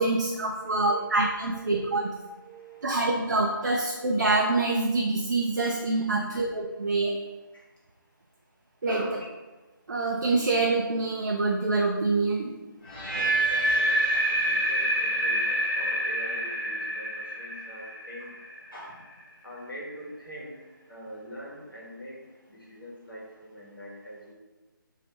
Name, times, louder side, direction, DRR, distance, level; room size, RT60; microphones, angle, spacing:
voice 1, 0.0-2.1 2.8-7.2 8.8-9.0 9.9-12.5, right 3 dB, 55° right, 0 dB, 0.3 m, -26 dB
voice 2, 0.6-1.3 1.7-3.0 6.1-6.5 7.5-7.6 8.9-9.3 13.1-18.4 18.7-19.1 19.4-22.2 22.5-24.3, equal, 80° left, -5 dB, 1.3 m, -42 dB
sound 1, 12.9-18.9, right 1 dB, 35° left, 1.1 m, -27 dB
2.9 x 2.7 x 3.0 m, 1.2 s
figure-of-eight pair, 155°, 11 cm